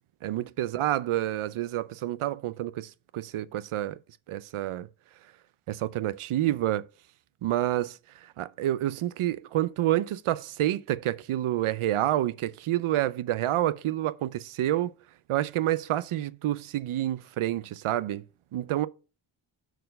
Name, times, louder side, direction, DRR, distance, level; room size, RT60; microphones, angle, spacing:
voice 1, 0.2-4.0 4.3-4.9 5.7-6.9 7.4-8.0 8.4-14.9 15.3-18.2 18.5-18.9, right 13 dB, 75° right, 0.7 m, -28 dB
6.2 x 4.6 x 6.4 m
wide cardioid pair, 125°, 50 cm